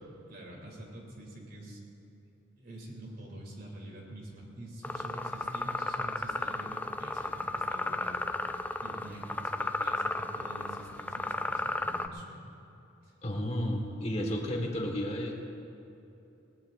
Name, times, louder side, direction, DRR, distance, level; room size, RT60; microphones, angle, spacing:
voice 1, 0.3-1.8 2.6-12.5 13.0-13.1, right 1 dB, 50° right, -2 dB, 3.0 m, -46 dB
sound 1, 4.8-12.1, left 2 dB, 10° left, 0.4 m, -34 dB
voice 2, 13.2-15.3, equal, 35° left, 1 dB, 1.6 m, -32 dB
20.0 x 18.0 x 2.6 m, 2.9 s
head